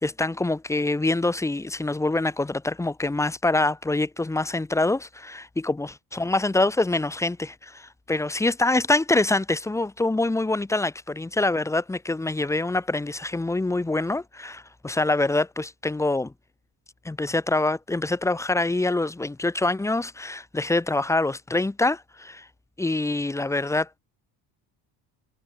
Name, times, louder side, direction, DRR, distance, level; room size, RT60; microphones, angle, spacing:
voice 1, 0.0-5.9 6.1-16.3 17.0-22.5 22.8-24.0, left 2 dB, 5° left, 0.5 m, -25 dB
supercardioid pair, 65°, 50 cm